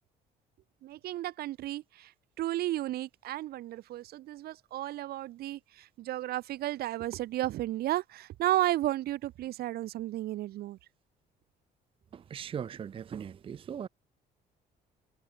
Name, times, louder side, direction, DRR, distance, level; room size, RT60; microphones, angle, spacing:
voice 1, 0.8-10.8, right 15 dB, 65° right, 0.7 m, -33 dB
voice 2, 12.1-13.9, right 8 dB, 30° right, 0.5 m, -39 dB
cardioid pair, 110°, 17 cm